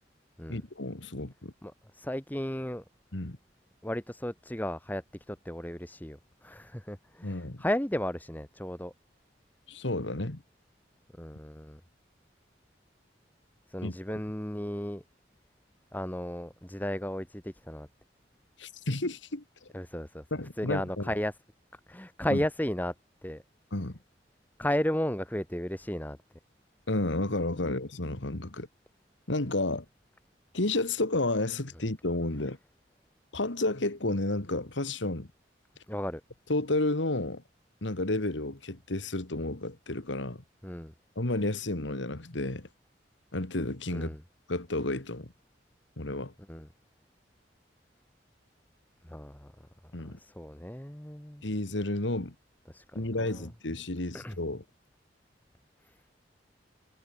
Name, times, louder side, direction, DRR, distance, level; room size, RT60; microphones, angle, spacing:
voice 1, 0.5-1.5 3.1-3.4 7.2-7.6 9.7-10.4 13.8-13.9 18.6-19.7 20.3-21.1 22.3-22.4 23.7-24.0 26.9-28.7 29.3-29.9 30.5-32.6 33.3-35.3 36.5-37.4 37.8-40.4 41.2-42.7 43.3-44.1 44.5-45.3 46.0-46.3 49.9-50.2 51.4-52.3 52.9-54.6, left 2 dB, 85° left, 2.2 m, -31 dB
voice 2, 1.6-2.8 3.8-8.9 11.2-11.8 13.7-15.0 15.9-17.9 19.7-20.2 20.6-21.3 21.7-22.9 23.2-23.4 24.6-26.2 35.9-36.2 40.6-40.9 43.9-44.2 46.5-46.7 49.0-49.5 50.0-51.4 52.7-53.5 54.1-54.4 55.8-55.9, left 1 dB, 10° left, 1.4 m, -34 dB
head